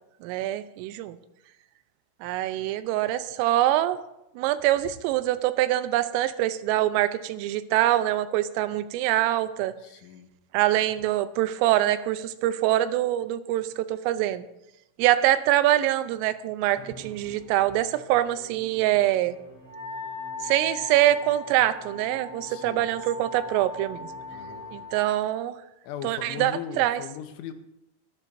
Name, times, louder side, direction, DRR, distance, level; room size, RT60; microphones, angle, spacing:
voice 1, 0.2-1.2 2.2-4.0 4.4-9.7 10.5-14.5 15.0-19.4 20.4-24.1 24.7-25.6 26.0-27.0, right 14 dB, 90° right, 12 dB, 3.3 m, -24 dB
voice 2, 9.8-10.3 22.5-22.9 24.3-24.7 25.8-27.5, left 9 dB, 80° left, 8 dB, 3.2 m, -39 dB
Musical instrument, 16.8-25.3, equal, 35° left, 4.9 m, -50 dB
Wind instrument woodwind instrument, 19.7-25.2, left 4 dB, 35° right, 2.3 m, -39 dB
23.5 x 10.5 x 2.7 m, 0.89 s
omnidirectional pair, 5.8 m